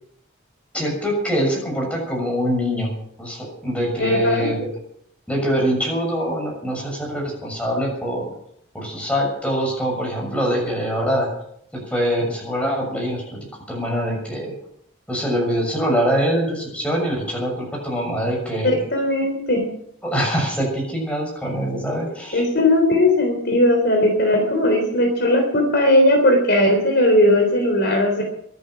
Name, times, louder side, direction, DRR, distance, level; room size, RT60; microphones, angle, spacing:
voice 1, 0.7-2.9 3.2-4.7 5.3-8.3 8.7-11.3 11.7-13.4 13.7-14.5 15.1-18.8 20.0-22.4, equal, 5° left, -1 dB, 6.6 m, -23 dB
voice 2, 4.0-4.5 18.6-19.7 22.3-28.2, left 1 dB, 50° left, 3 dB, 3.7 m, -18 dB
23.5 x 9.9 x 5.9 m, 0.72 s
head